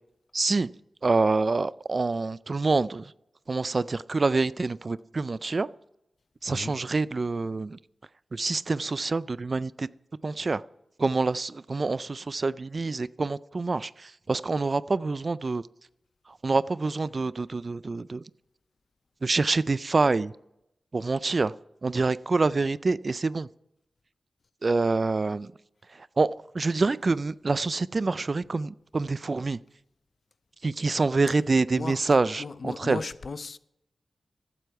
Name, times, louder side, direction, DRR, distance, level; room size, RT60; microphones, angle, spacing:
voice 1, 0.3-0.7 1.0-3.1 3.5-5.7 6.4-7.8 8.3-9.9 10.2-10.6 11.0-15.6 16.4-18.2 19.2-20.3 20.9-21.5 21.8-23.5 24.6-25.5 25.9-29.6 30.6-33.0, right 3 dB, 45° right, 0.3 m, -26 dB
voice 2, 32.4-33.6, left 4 dB, 60° left, 0.4 m, -36 dB
15.0 x 8.1 x 4.6 m
wide cardioid pair, 80°, 0 cm